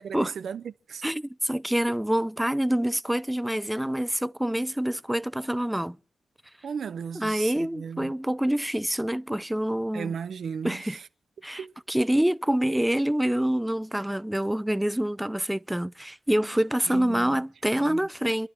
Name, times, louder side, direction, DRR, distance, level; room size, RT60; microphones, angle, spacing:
voice 1, 0.0-1.0 6.6-8.1 9.9-11.0 11.6-11.7 16.9-17.4 17.8-18.0, right 7 dB, 70° right, 0.7 m, -36 dB
voice 2, 1.0-6.0 7.1-10.1 10.6-11.0 11.4-18.5, right 1 dB, 10° right, 0.6 m, -26 dB
28.0 x 11.0 x 3.6 m
supercardioid pair, 40°, 0 cm